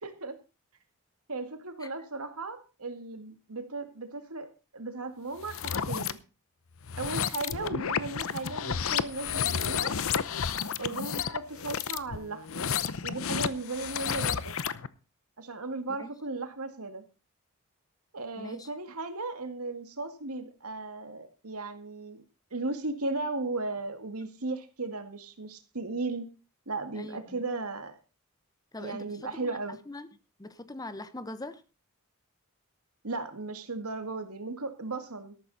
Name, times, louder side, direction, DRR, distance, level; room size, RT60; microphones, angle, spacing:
voice 1, 0.0-0.4 1.3-4.5 4.7-6.2 7.0-9.9 10.8-12.7 13.0-14.6 15.4-17.0 18.1-22.2 22.5-26.3 26.7-28.0 28.8-29.8 33.0-35.4, right 3 dB, 80° right, 8 dB, 2.1 m, -36 dB
sound 1, 5.4-6.1 6.8-14.9, left 7 dB, 65° left, 0.8 m, -31 dB
voice 2, 18.4-18.7 27.0-27.4 28.7-29.5 29.9-30.1 30.4-31.6, left 2 dB, 15° left, 12 dB, 1.0 m, -41 dB
13.5 x 12.0 x 4.1 m, 0.32 s
head